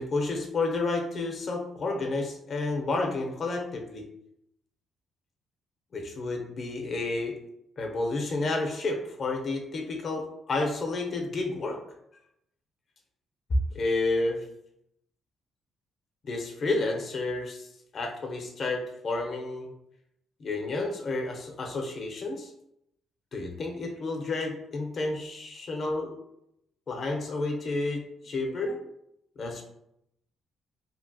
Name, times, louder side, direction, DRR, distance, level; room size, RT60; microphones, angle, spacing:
voice 1, 0.0-4.0 5.9-7.4 7.8-11.8 13.7-14.4 16.2-17.7 17.9-19.7 20.4-22.5 23.3-26.2 26.9-28.8 29.4-29.6, left 2 dB, 50° left, 2 dB, 0.6 m, -30 dB
2.8 x 2.6 x 2.6 m, 0.79 s
cardioid pair, 90°, 0 cm